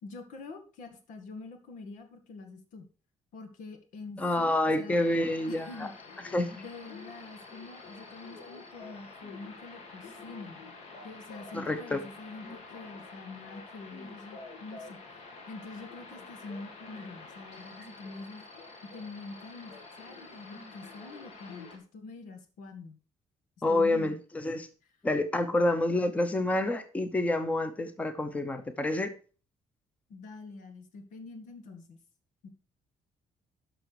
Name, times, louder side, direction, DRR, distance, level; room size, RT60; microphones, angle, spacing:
voice 1, 0.0-2.9 3.3-5.0 5.5-5.9 6.6-10.6 11.0-15.2 15.5-18.4 18.9-23.0 23.7-24.1 25.1-25.2 30.1-32.0 32.4-32.5, left 3 dB, 85° left, 7 dB, 2.1 m, -45 dB
voice 2, 4.2-5.7 6.3-6.6 11.5-12.0 23.6-24.7 25.0-29.1, left 1 dB, 10° left, 10 dB, 0.8 m, -28 dB
sound 1, 4.9-21.8, left 3 dB, 60° left, 2.2 m, -48 dB
11.5 x 6.1 x 4.7 m, 0.37 s
cardioid pair, 170°, 13 cm